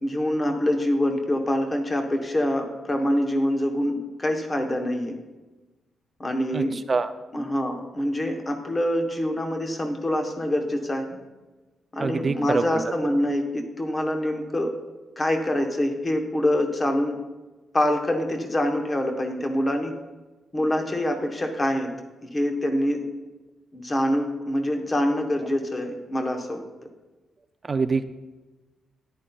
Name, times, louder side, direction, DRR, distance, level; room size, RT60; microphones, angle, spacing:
voice 1, 0.0-5.2 6.2-6.7 7.3-11.0 11.9-14.7 15.2-17.2 17.7-19.9 20.5-21.9 22.2-23.0 23.7-26.6, left 1 dB, 20° left, 4 dB, 0.9 m, -25 dB
voice 2, 6.5-7.1 12.0-12.8 27.6-28.0, right 4 dB, 25° right, 10 dB, 0.3 m, -25 dB
13.5 x 10.5 x 2.3 m, 1.2 s
wide cardioid pair, 175°, 0 cm